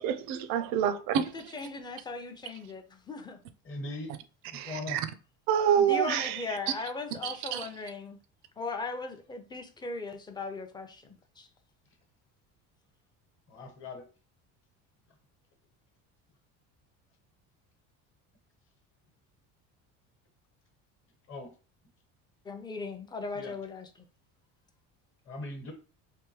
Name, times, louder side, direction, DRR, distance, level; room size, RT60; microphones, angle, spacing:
voice 1, 0.0-1.3 4.5-5.0 5.5-6.4 7.2-7.7, right 9 dB, 75° right, 0.6 m, -27 dB
voice 2, 1.3-3.4 5.8-8.2 8.6-11.1 11.4-11.5 22.5-24.0, left 4 dB, 15° left, 0.5 m, -38 dB
voice 3, 3.6-4.1 4.5-5.0 13.5-14.1 21.3-21.5 23.3-23.6 25.3-25.7, left 2 dB, 35° left, 1.1 m, -39 dB
3.5 x 2.7 x 3.1 m
cardioid pair, 130°, 34 cm